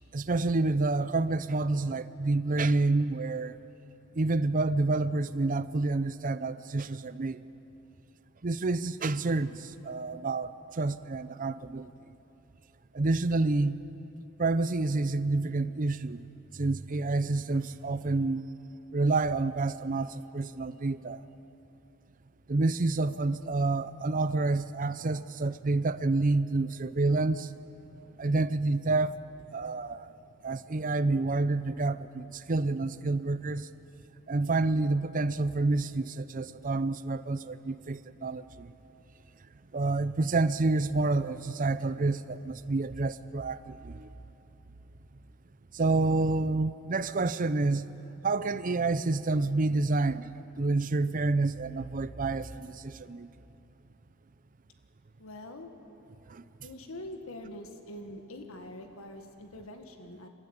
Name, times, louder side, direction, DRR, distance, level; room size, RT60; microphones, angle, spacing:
voice 1, 0.1-3.6 4.1-7.4 8.4-11.9 12.9-13.8 14.4-16.3 16.5-18.4 18.9-21.2 22.5-27.5 28.2-29.1 29.5-30.1 30.4-33.7 34.3-38.7 39.7-44.1 45.7-47.9 48.2-50.3 50.6-53.3 56.3-56.4, right 3 dB, 40° right, 0.6 m, -28 dB
voice 2, 55.2-55.7 56.6-60.3, left 1 dB, 80° left, 1.7 m, -44 dB
29.5 x 13.5 x 8.9 m
head